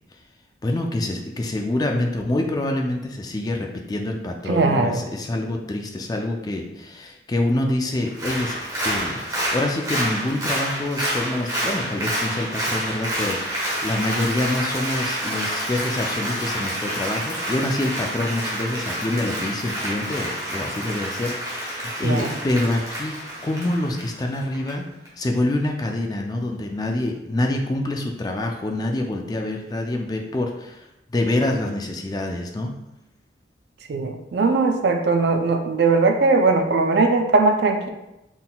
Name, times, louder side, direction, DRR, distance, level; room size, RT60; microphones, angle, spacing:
voice 1, 0.6-8.6 8.9-23.2 23.4-24.9 25.2-30.9 31.1-32.8, left 1 dB, 20° left, 2 dB, 0.3 m, -26 dB
voice 2, 4.5-5.0 22.0-22.4 33.9-37.9, right 3 dB, 65° right, 5 dB, 0.4 m, -19 dB
Applause, 8.1-24.7 25.0-25.1, equal, 20° right, 1.1 m, -28 dB
3.9 x 3.7 x 2.2 m, 0.93 s
head